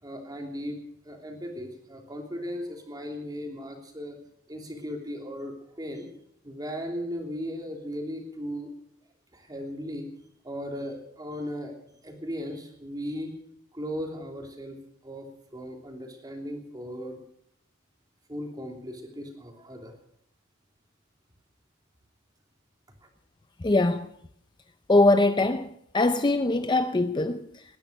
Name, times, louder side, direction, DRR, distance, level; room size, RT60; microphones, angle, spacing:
voice 1, 0.0-0.8 1.0-4.2 4.5-6.1 6.4-8.7 9.3-10.1 10.4-11.7 12.0-13.3 13.7-17.2 18.3-19.9, equal, 20° right, 3.0 m, -37 dB
voice 2, 23.6-24.1 24.9-27.6, left 2 dB, 20° left, 0.5 m, -22 dB
20.0 x 10.5 x 6.6 m
head